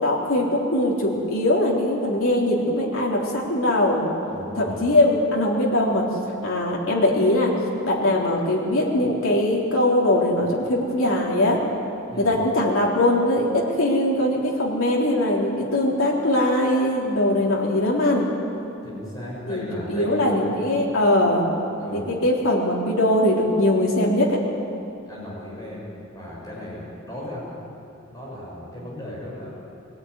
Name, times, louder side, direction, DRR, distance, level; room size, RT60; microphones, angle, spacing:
voice 1, 0.0-4.1 4.6-6.0 6.4-7.5 7.8-11.6 12.2-18.3 19.5-21.5 21.9-24.4, left 1 dB, 80° left, -3 dB, 3.8 m, -21 dB
voice 2, 4.3-4.9 12.1-12.3 18.8-20.5 21.8-22.1 25.0-27.5 28.1-29.5, left 1 dB, 20° left, -5 dB, 6.8 m, -36 dB
22.0 x 16.5 x 9.8 m, 2.7 s
head